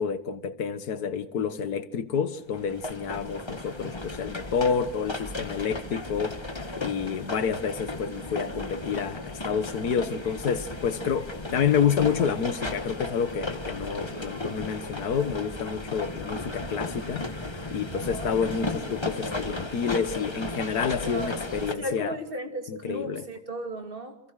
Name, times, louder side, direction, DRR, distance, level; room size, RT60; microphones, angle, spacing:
voice 1, 0.0-6.4 6.8-17.3 17.7-22.2 22.7-23.3, left 7 dB, 75° left, 1.8 m, -29 dB
sound 1, 2.5-21.7, left 2 dB, 15° left, 1.6 m, -35 dB
voice 2, 14.2-15.5 17.9-18.3 21.0-21.4 21.8-24.3, right 1 dB, 35° right, 2.9 m, -36 dB
27.5 x 27.0 x 6.4 m
omnidirectional pair, 1.7 m